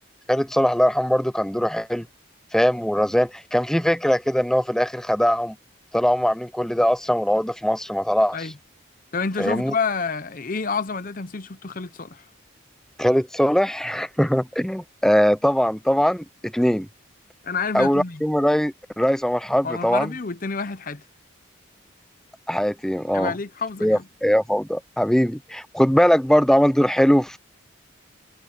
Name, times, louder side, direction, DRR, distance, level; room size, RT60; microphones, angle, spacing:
voice 1, 0.3-2.1 2.5-5.6 5.9-8.5 9.4-9.7 13.0-16.9 17.7-20.1 22.5-23.3 23.8-27.4, equal, 5° left, 0.6 m, -21 dB
voice 2, 9.1-12.3 17.4-18.2 19.6-21.0 23.1-24.0, left 4 dB, 40° left, 0.7 m, -28 dB
head